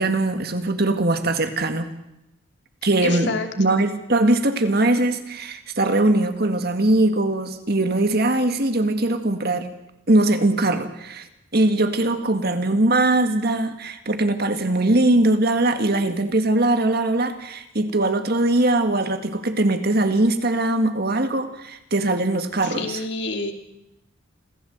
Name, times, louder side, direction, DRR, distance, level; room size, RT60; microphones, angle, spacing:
voice 1, 0.0-1.9 2.8-9.7 10.1-11.3 11.5-23.0, right 2 dB, 50° right, 8 dB, 2.0 m, -21 dB
voice 2, 3.0-3.8 22.6-23.5, left 2 dB, 60° left, 5 dB, 2.8 m, -28 dB
27.0 x 15.5 x 8.0 m, 0.90 s
head